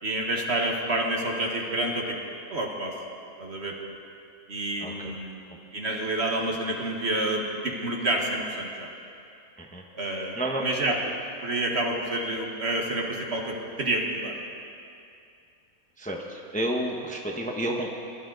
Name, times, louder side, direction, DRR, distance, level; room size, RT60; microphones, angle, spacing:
voice 1, 0.0-2.2 2.5-2.9 3.4-3.8 4.5-5.4 5.7-8.9 10.0-11.0 11.4-14.3, right 1 dB, 50° right, 1 dB, 1.6 m, -28 dB
voice 2, 4.8-5.1 9.6-9.8 10.4-10.6 16.0-17.9, right 1 dB, 5° left, 0 dB, 0.9 m, -30 dB
22.0 x 12.5 x 3.9 m, 2.6 s
omnidirectional pair, 1.5 m